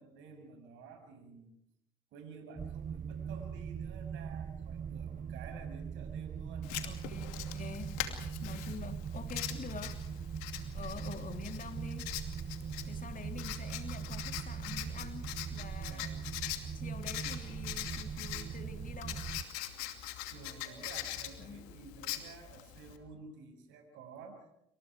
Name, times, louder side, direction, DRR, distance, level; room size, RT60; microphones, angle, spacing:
voice 1, 0.0-1.5 2.1-6.7 8.0-8.3 15.9-16.2 18.1-18.3 20.3-24.5, right 5 dB, 75° right, 6.9 m, -52 dB
sound 1, 2.6-19.4, right 7 dB, 45° right, 1.1 m, -41 dB
Writing, 6.6-23.0, left 13 dB, 85° left, 2.6 m, -43 dB
voice 2, 6.8-8.0 8.4-10.0 10.7-12.1 12.9-16.1 16.7-19.3 21.4-21.7, left 5 dB, 45° left, 3.5 m, -47 dB
27.5 x 26.0 x 4.8 m
hypercardioid pair, 50°, 19 cm